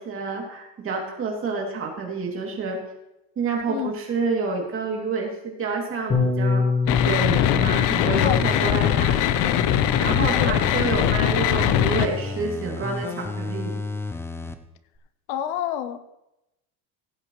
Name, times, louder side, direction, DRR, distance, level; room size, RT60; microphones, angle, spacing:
voice 1, 0.0-2.8 3.4-6.6 7.0-9.5 10.0-13.8, right 4 dB, 30° right, 2.7 m, -28 dB
Bass guitar, 6.1-12.3, left 5 dB, 20° left, 1.7 m, -28 dB
sound 1, 6.9-12.1, left 11 dB, 55° left, 0.7 m, -21 dB
sound 2, 8.1-11.1 11.5-14.6 15.0-15.1, left 3 dB, 5° left, 0.3 m, -32 dB
voice 2, 8.2-9.0 10.4-10.6 15.3-16.0, left 10 dB, 85° left, 1.0 m, -29 dB
16.5 x 8.9 x 3.1 m
cardioid pair, 160°, 39 cm